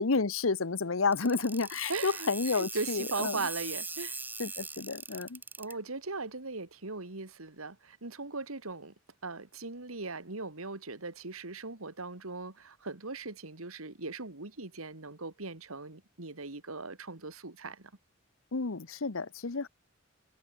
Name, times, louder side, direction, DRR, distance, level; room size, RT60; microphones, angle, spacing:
voice 1, 0.0-3.4 4.4-5.4 18.5-19.7, left 4 dB, 75° left, 1.0 m, -30 dB
sound 1, 1.1-5.7, right 3 dB, 10° right, 7.1 m, -40 dB
voice 2, 1.9-4.2 5.1-5.2 5.6-8.9 9.2-17.9, right 3 dB, 90° right, 2.4 m, -39 dB
head